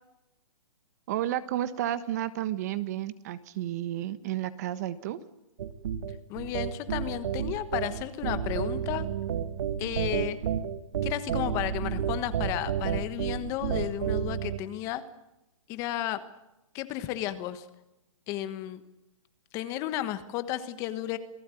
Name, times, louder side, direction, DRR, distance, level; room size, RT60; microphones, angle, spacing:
voice 1, 1.1-5.2, right 12 dB, 30° right, 14 dB, 1.4 m, -32 dB
sound 1, 5.6-14.6, right 8 dB, 50° right, 1.9 m, -31 dB
voice 2, 6.1-9.1 9.8-10.4 11.0-15.0 15.7-16.2 16.7-17.7 18.3-18.8 19.5-21.2, left 13 dB, 20° left, 12 dB, 1.3 m, -33 dB
28.0 x 18.5 x 9.1 m, 0.91 s
hypercardioid pair, 170°, 17 cm